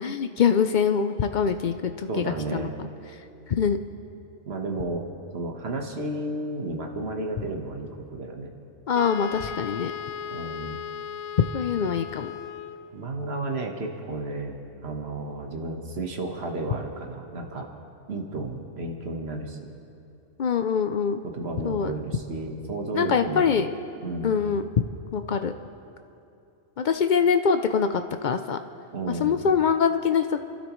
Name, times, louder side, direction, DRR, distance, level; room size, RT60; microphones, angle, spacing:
voice 1, 0.0-2.1 2.5-2.7 3.6-3.8 8.9-9.9 11.5-12.3 20.4-21.2 21.6-21.9 22.9-23.7 24.2-24.7 25.1-25.5 26.8-28.6 29.2-30.4, left 6 dB, 55° left, 8 dB, 0.5 m, -24 dB
voice 2, 2.1-2.7 4.5-5.1 5.3-8.5 10.3-10.8 12.9-17.7 18.1-19.6 21.2-23.5 24.0-24.4 28.9-29.4, right 2 dB, 55° right, 2 dB, 1.6 m, -32 dB
Wind instrument woodwind instrument, 8.9-13.0, left 8 dB, 90° left, 1.0 m, -36 dB
29.5 x 12.5 x 3.1 m, 2.6 s
omnidirectional pair, 1.3 m